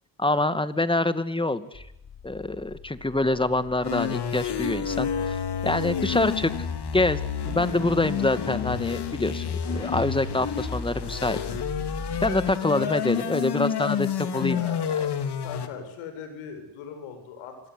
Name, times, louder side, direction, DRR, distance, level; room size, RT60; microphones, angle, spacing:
voice 1, 0.2-1.8 2.2-6.5 6.9-11.4 12.2-14.7, left 2 dB, 10° left, 12 dB, 2.3 m, -26 dB
sound 1, 1.7-12.5, left 4 dB, 30° left, 3.9 m, -40 dB
voice 2, 3.1-3.6 5.8-6.0 12.6-12.9 14.4-17.6, left 7 dB, 90° left, 8 dB, 7.8 m, -40 dB
sound 2, 3.8-15.7, left 7 dB, 55° left, 3.7 m, -29 dB
26.5 x 22.0 x 9.9 m, 0.80 s
cardioid pair, 85°, 49 cm